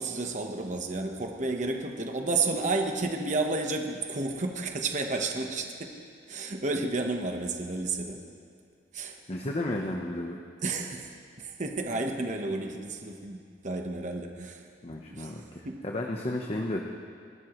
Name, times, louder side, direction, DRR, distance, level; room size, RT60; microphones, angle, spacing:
voice 1, 0.0-6.0 6.3-8.2 8.9-9.2 10.6-14.6 15.1-15.3 15.6-15.8, right 3 dB, 40° right, 3 dB, 1.1 m, -31 dB
voice 2, 9.3-10.4 14.8-16.8, left 1 dB, 35° left, 1 dB, 0.9 m, -33 dB
30.0 x 13.0 x 3.1 m, 2.3 s
head